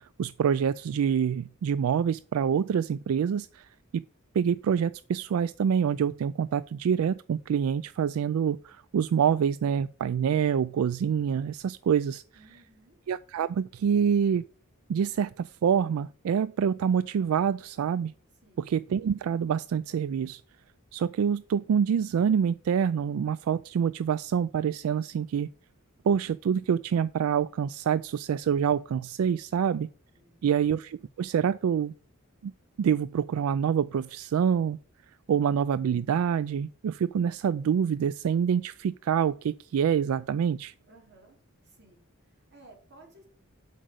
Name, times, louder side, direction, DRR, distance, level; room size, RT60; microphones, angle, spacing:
voice 1, 0.0-3.7 3.9-4.0 4.3-12.2 13.1-14.4 14.9-18.1 18.6-20.4 20.9-25.5 26.0-29.9 30.4-31.9 32.4-32.5 32.8-34.8 35.3-40.7, right 7 dB, 85° right, 0.3 m, -26 dB
voice 2, 12.3-13.0 18.4-18.6 30.2-30.4 40.9-41.4 41.6-43.2, right 2 dB, 55° right, 3.1 m, -56 dB
7.7 x 5.2 x 6.3 m
head